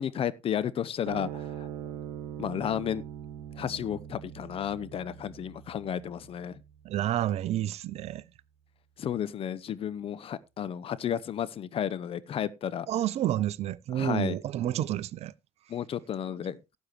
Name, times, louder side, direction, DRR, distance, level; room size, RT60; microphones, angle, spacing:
voice 1, 0.0-1.7 2.4-3.0 3.6-6.6 9.0-12.9 13.9-14.4 15.7-16.6, left 9 dB, 35° left, 0.8 m, -32 dB
sound 1, 1.0-7.7, right 10 dB, 65° right, 1.1 m, -42 dB
voice 2, 6.8-8.2 12.9-15.3, right 12 dB, 40° right, 0.6 m, -29 dB
17.5 x 8.3 x 3.1 m
figure-of-eight pair, 60°, 16 cm